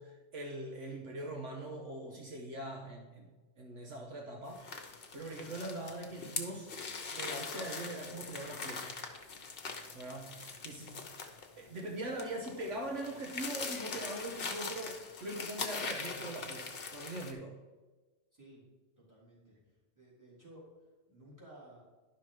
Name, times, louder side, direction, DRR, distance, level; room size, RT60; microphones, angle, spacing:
voice 1, 0.0-3.3 3.6-6.7 7.1-8.9 9.9-11.1 11.6-17.5, right 1 dB, 70° right, 1 dB, 1.3 m, -42 dB
sound 1, 4.5-17.3, left 4 dB, 50° left, 1.1 m, -42 dB
voice 2, 18.3-18.6 19.0-19.6 19.9-20.7 21.1-21.8, right 1 dB, 15° right, -5 dB, 3.4 m, -55 dB
11.0 x 5.9 x 4.8 m, 1.2 s
omnidirectional pair, 1.3 m